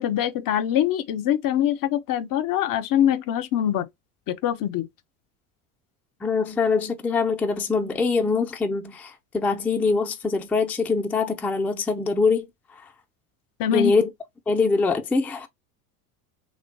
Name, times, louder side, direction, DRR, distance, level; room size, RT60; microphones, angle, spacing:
voice 1, 0.0-3.9 4.3-4.9 13.6-13.9, left 11 dB, 45° left, 0.6 m, -23 dB
voice 2, 6.2-12.5 13.7-14.1 14.5-15.5, left 4 dB, 5° left, 0.4 m, -23 dB
3.1 x 2.2 x 3.7 m
hypercardioid pair, 80°, 46 cm